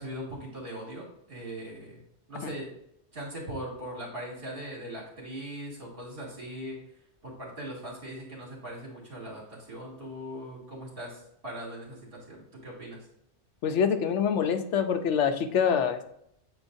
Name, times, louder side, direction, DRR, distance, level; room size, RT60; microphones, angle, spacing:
voice 1, 0.0-2.0 2.3-2.7 3.1-6.8 7.2-13.1, right 1 dB, 55° right, -4 dB, 2.7 m, -40 dB
voice 2, 13.6-16.1, left 7 dB, 90° left, 8 dB, 1.0 m, -25 dB
8.6 x 4.5 x 2.6 m, 0.73 s
omnidirectional pair, 1.2 m